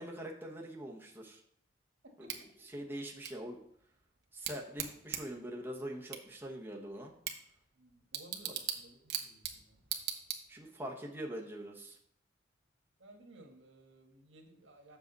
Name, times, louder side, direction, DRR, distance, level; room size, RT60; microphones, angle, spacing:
voice 1, 0.0-1.4 2.2-2.4 2.7-3.6 4.3-7.1 10.5-12.0, right 1 dB, 10° right, -2 dB, 1.0 m, -43 dB
voice 2, 2.0-2.7 7.7-9.9 13.0-15.0, right 2 dB, 80° right, 2 dB, 1.7 m, -58 dB
Bicycle / Tick, 2.3-10.8, right 9 dB, 60° right, 1.0 m, -43 dB
7.6 x 6.6 x 4.0 m, 0.69 s
head